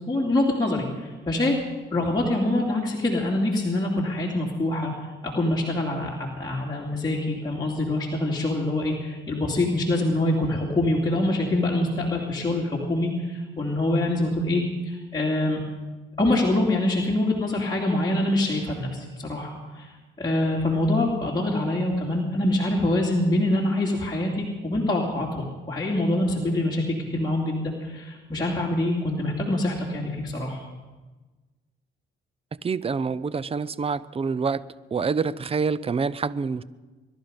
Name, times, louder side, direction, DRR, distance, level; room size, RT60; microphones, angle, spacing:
voice 1, 0.1-1.6 1.9-4.9 5.2-15.6 16.2-19.9 20.2-30.6, left 1 dB, 20° left, -4 dB, 2.7 m, -25 dB
voice 2, 32.6-34.6 34.9-36.6, right 5 dB, 30° right, 19 dB, 0.6 m, -26 dB
22.5 x 12.0 x 5.3 m, 1.3 s
cardioid pair, 90°, 20 cm